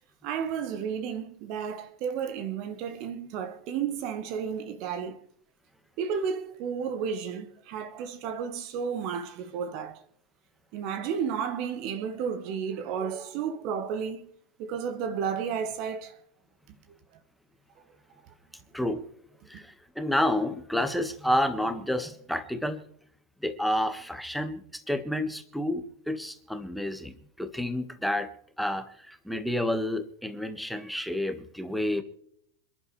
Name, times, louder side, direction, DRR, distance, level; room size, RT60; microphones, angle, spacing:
voice 1, 0.2-5.2 6.0-10.0 10.7-14.3 14.6-16.2 16.9-17.0, right 7 dB, 40° right, 1.5 m, -32 dB
voice 2, 19.4-22.8 23.4-27.1 27.4-28.3 28.6-32.0, left 1 dB, ahead, 1.6 m, -30 dB
28.0 x 11.5 x 3.3 m
figure-of-eight pair, 90°, 0 cm